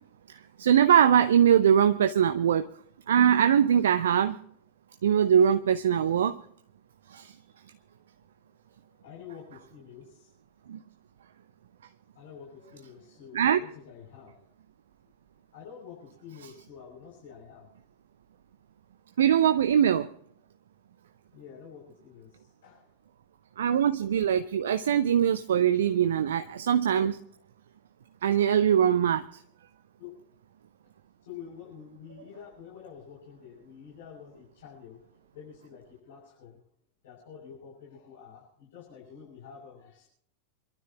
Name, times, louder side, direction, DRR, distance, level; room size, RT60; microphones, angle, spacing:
voice 1, 0.3-2.7 3.1-4.3 5.0-6.4 7.1-7.3 10.7-10.8 13.3-13.6 19.2-20.1 23.6-27.2 28.2-29.4, right 9 dB, 65° right, 10 dB, 0.6 m, -22 dB
voice 2, 9.0-10.3 11.7-11.8 12.1-14.4 15.5-17.7 21.3-22.9 30.0-30.1 31.2-35.0 35.3-36.6 37.0-40.1, left 7 dB, 55° left, -4 dB, 6.7 m, -48 dB
28.0 x 12.5 x 2.9 m, 0.65 s
figure-of-eight pair, 90°, 0 cm